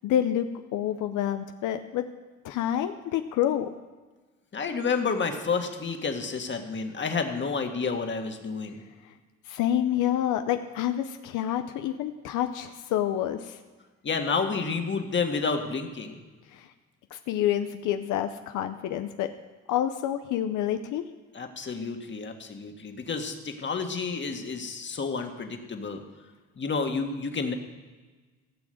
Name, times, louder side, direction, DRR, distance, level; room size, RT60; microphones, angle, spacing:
voice 1, 0.0-2.0 2.4-3.7 9.5-13.6 16.5-16.7 17.1-19.3 19.7-21.0, left 11 dB, 90° left, 7 dB, 0.7 m, -28 dB
voice 2, 4.5-8.8 14.0-16.2 21.3-26.0 26.6-27.5, left 5 dB, 40° left, 4 dB, 1.7 m, -30 dB
16.0 x 6.2 x 7.8 m, 1.3 s
cardioid pair, 90°, 30 cm